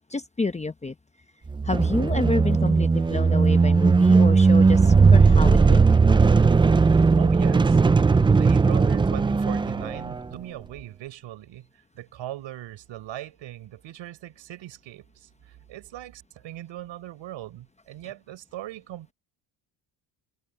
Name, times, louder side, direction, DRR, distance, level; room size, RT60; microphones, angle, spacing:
voice 1, 0.1-0.9 1.6-5.8, left 3 dB, 15° left, 0.9 m, -29 dB
sound 1, 1.5-10.3, right 4 dB, 10° right, 0.3 m, -18 dB
voice 2, 7.2-19.1, right 13 dB, 70° right, 4.7 m, -40 dB
cardioid pair, 115°, 47 cm